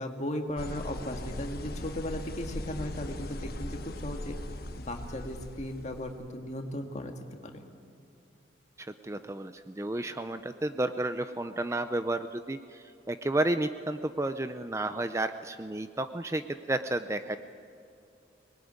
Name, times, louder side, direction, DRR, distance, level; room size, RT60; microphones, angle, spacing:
voice 1, 0.0-4.4 4.8-7.1 7.5-7.6, left 1 dB, 40° left, 4 dB, 2.0 m, -36 dB
sound 1, 0.6-6.2, left 1 dB, 55° left, 1.3 m, -39 dB
voice 2, 8.8-17.4, right 1 dB, 15° right, 10 dB, 0.5 m, -32 dB
24.5 x 20.0 x 9.6 m, 2.6 s
head